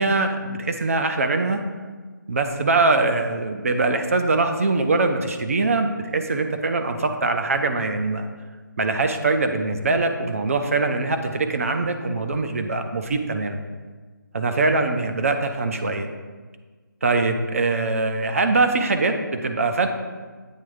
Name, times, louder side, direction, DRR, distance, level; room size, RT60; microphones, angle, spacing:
voice 1, 0.0-1.6 2.3-8.3 8.8-13.6 14.3-16.1 17.0-19.9, right 3 dB, 45° right, 6 dB, 0.6 m, -22 dB
8.3 x 3.4 x 4.9 m, 1.4 s
figure-of-eight pair, 160°, 11 cm